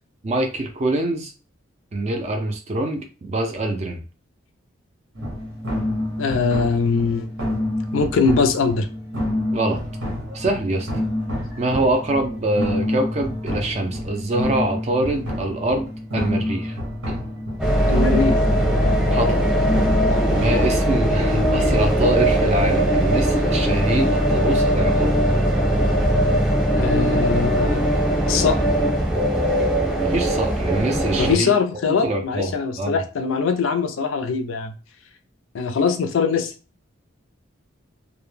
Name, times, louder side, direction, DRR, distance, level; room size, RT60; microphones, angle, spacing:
voice 1, 0.2-1.3 1.9-4.0 9.5-9.8 10.3-10.9 11.6-16.8 17.1-17.2 19.1-19.6 20.3-25.2 30.0-31.5 31.9-33.0, right 1 dB, 30° right, 5 dB, 0.4 m, -24 dB
sound 1, 5.2-20.7, left 1 dB, 90° right, 0.9 m, -28 dB
voice 2, 6.2-7.3 7.9-8.9 17.9-18.4 26.8-27.8 28.3-28.6 31.2-34.7 35.5-36.5, left 5 dB, 75° left, 8 dB, 0.4 m, -21 dB
sound 2, 17.6-31.3, equal, 5° right, 0.7 m, -20 dB
2.1 x 2.1 x 3.1 m, 0.35 s
head